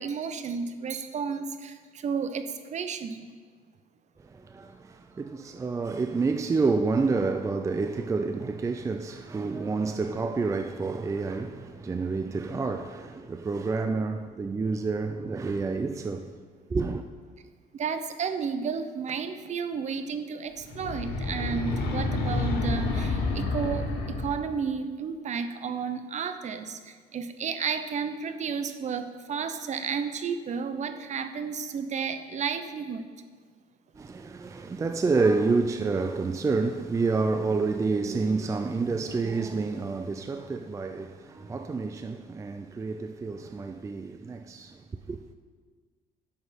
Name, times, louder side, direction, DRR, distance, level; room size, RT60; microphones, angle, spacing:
voice 1, 0.0-2.4 2.7-3.3 17.7-33.0, right 6 dB, 45° right, 0.8 m, -32 dB
voice 2, 4.2-16.3 16.7-17.0 34.0-44.8 45.1-45.3, right 4 dB, 20° right, 0.4 m, -29 dB
sound 1, 20.6-24.5, left 3 dB, 80° left, 1.7 m, -29 dB
9.9 x 6.7 x 5.2 m
cardioid pair, 110°, 17 cm